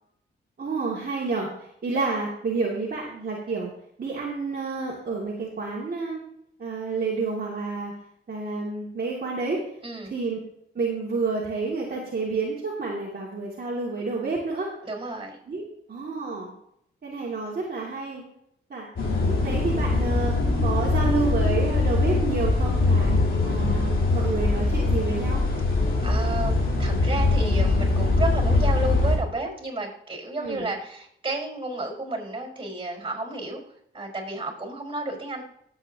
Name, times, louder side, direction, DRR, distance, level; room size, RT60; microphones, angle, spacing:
voice 1, 0.6-3.7 4.0-6.2 6.6-7.9 8.3-9.6 10.1-10.4 10.7-14.7 15.5-16.5 17.0-18.2 18.7-18.9 19.3-20.3 20.6-23.1 23.4-25.4 30.4-30.7, right 4 dB, 45° right, -5 dB, 2.4 m, -29 dB
voice 2, 9.8-10.1 14.8-15.4 26.0-33.6 33.9-35.4, right 2 dB, 25° right, 0 dB, 4.7 m, -32 dB
sound 1, 19.0-29.2, left 2 dB, 65° left, 3.4 m, -22 dB
19.5 x 8.0 x 2.8 m, 0.74 s
cardioid pair, 70°, 21 cm